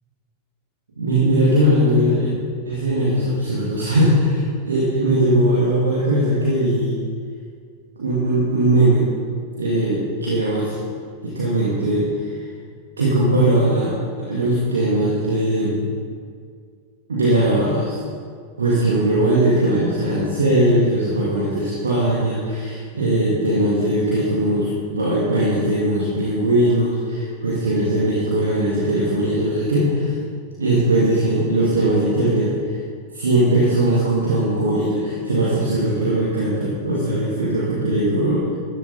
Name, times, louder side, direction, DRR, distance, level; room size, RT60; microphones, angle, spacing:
voice 1, 1.0-2.3 2.6-7.0 8.0-9.1 9.6-10.7 11.2-12.3 13.0-15.9 17.1-18.0 18.6-30.1 30.6-32.5 33.1-38.5, right 1 dB, 70° right, -7 dB, 2.2 m, -19 dB
13.5 x 12.0 x 4.2 m, 2.1 s
figure-of-eight pair, 90°, 0 cm